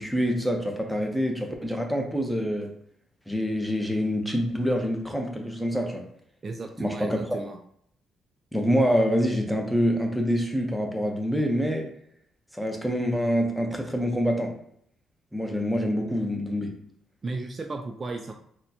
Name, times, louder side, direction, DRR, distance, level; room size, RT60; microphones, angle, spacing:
voice 1, 0.0-2.7 3.3-6.1 6.8-7.4 8.5-11.9 12.5-14.6 15.3-16.8, equal, ahead, 2 dB, 0.7 m, -26 dB
voice 2, 6.4-7.6 17.2-18.3, right 3 dB, 35° right, 3 dB, 0.3 m, -34 dB
4.1 x 2.1 x 2.8 m, 0.67 s
cardioid pair, 90°, 0 cm